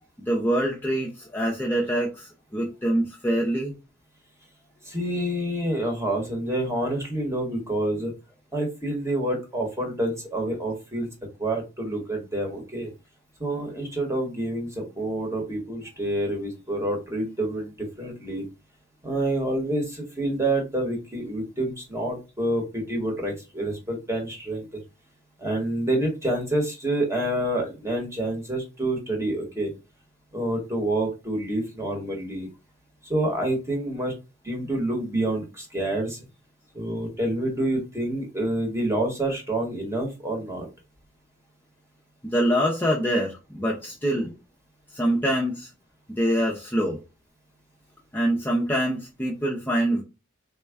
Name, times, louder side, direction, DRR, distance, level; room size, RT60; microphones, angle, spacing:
voice 1, 0.3-3.8 42.2-44.3 44.9-45.7 46.2-47.0 48.1-50.0, right 1 dB, 10° left, 0.5 m, -25 dB
voice 2, 4.8-8.1 8.5-11.1 11.4-12.9 13.4-18.4 19.0-24.8 25.4-29.7 30.3-32.5 33.1-34.1 34.4-36.2 36.7-40.7 44.1-44.3, right 1 dB, 15° right, 1.0 m, -28 dB
3.4 x 2.1 x 3.3 m
head